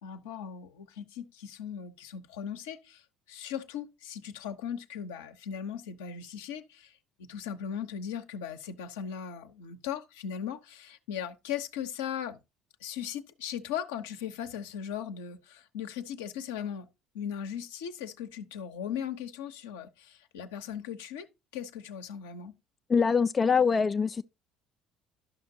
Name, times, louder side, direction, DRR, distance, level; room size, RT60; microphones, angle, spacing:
voice 1, 0.0-3.0 3.3-12.4 12.8-16.9 17.1-21.3 21.5-22.5, left 8 dB, 80° left, 0.5 m, -38 dB
voice 2, 22.9-24.2, left 5 dB, 30° left, 0.3 m, -24 dB
12.0 x 5.7 x 2.6 m
hypercardioid pair, 60°, 0 cm